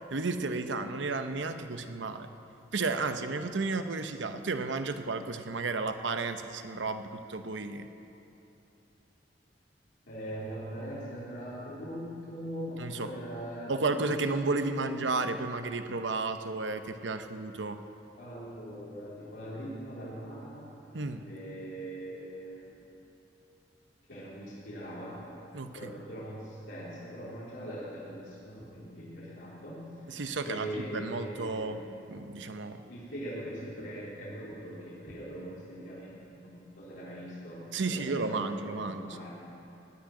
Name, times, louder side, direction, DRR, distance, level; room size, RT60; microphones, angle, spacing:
voice 1, 0.0-2.3 2.7-7.9 12.8-13.1 13.7-17.8 20.9-21.3 25.5-25.9 30.1-31.8 32.1-32.8 37.7-39.2, right 3 dB, 75° right, 9 dB, 0.8 m, -33 dB
voice 2, 10.1-14.9 18.2-20.6 21.2-22.8 24.1-25.2 25.7-29.9 30.4-31.8 32.9-39.3, equal, 80° left, -10 dB, 3.8 m, -41 dB
16.5 x 6.4 x 10.0 m, 2.9 s
head